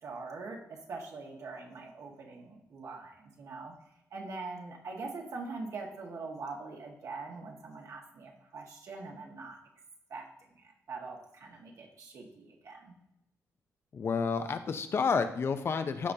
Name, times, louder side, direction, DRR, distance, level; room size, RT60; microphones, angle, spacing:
voice 1, 0.0-3.7 4.1-9.6 10.1-10.3 10.5-12.9, right 3 dB, 60° right, 0 dB, 1.8 m, -43 dB
voice 2, 13.9-16.1, left 5 dB, 45° left, 9 dB, 0.6 m, -30 dB
13.5 x 5.1 x 2.8 m, 0.82 s
cardioid pair, 115°, 6 cm